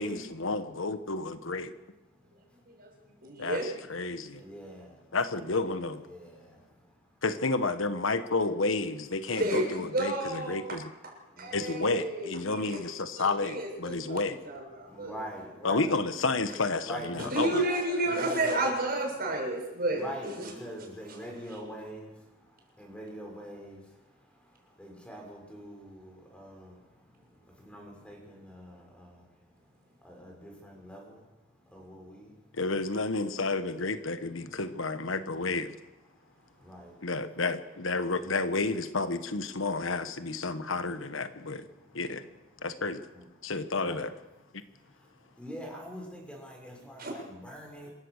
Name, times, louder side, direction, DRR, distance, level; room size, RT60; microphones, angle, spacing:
voice 1, 0.0-1.7 3.4-4.4 5.1-6.1 7.2-10.9 11.5-14.4 15.6-17.6 32.5-35.8 37.0-41.7 41.9-42.3 42.6-43.0 43.4-44.1, left 3 dB, 75° left, 11 dB, 1.2 m, -31 dB
voice 2, 1.8-3.5 4.1-5.2 6.0-7.2 11.2-11.6 14.1-14.2 14.8-15.9 16.8-17.5 18.0-18.6 19.5-32.6 33.1-33.2 34.4-34.6 36.1-37.1 38.2-38.6 40.5-40.6 41.4-42.7 43.1-44.1 44.6-47.9, equal, 5° left, 0 dB, 6.2 m, -45 dB
voice 3, 2.7-3.7 4.3-4.5 9.3-10.6 11.4-12.8 13.2-15.1 17.2-20.0 47.0-47.1, right 1 dB, 50° right, 1 dB, 6.7 m, -31 dB
26.5 x 15.5 x 6.6 m, 1.0 s
head